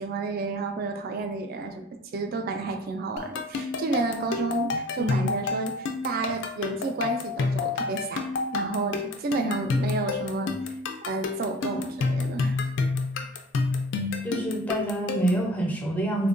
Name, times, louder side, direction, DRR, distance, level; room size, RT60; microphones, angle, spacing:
voice 1, 0.0-1.9 2.1-8.3 8.5-10.5 11.1-12.6, right 3 dB, 50° right, 5 dB, 0.3 m, -31 dB
sound 1, 3.2-15.5, left 4 dB, 65° left, 0.4 m, -29 dB
voice 2, 14.2-16.3, right 1 dB, 10° left, 0 dB, 0.5 m, -27 dB
3.5 x 2.1 x 2.5 m, 0.71 s
head